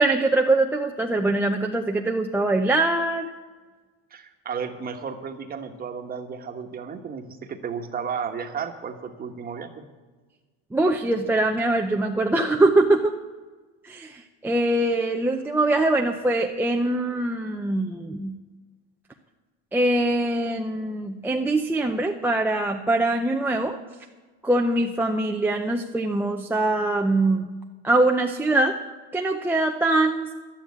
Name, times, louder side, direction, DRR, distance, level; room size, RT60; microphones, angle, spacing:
voice 1, 0.0-3.3 10.7-13.1 13.8-18.3 19.7-23.8 24.4-27.5 27.8-28.8 29.1-30.3, right 2 dB, 5° right, 1 dB, 0.6 m, -23 dB
voice 2, 4.1-9.9, right 6 dB, 30° right, 5 dB, 1.4 m, -33 dB
11.5 x 9.6 x 8.5 m, 1.3 s
supercardioid pair, 125°, 32 cm